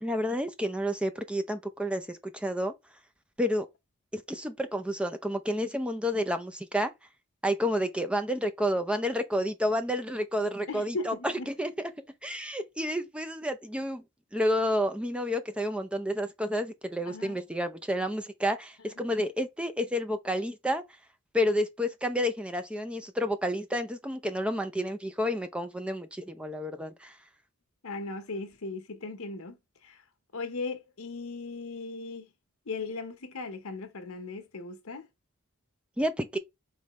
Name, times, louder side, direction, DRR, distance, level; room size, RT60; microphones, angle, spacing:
voice 1, 0.0-2.7 3.4-3.7 4.1-6.9 7.4-11.7 12.2-14.0 14.3-20.8 21.3-27.2 36.0-36.4, equal, 5° right, 0.5 m, -30 dB
voice 2, 10.7-11.5 17.1-17.4 19.0-19.1 27.8-30.0 30.3-32.3 32.7-35.1, left 3 dB, 75° left, 1.1 m, -38 dB
5.1 x 3.2 x 3.1 m
head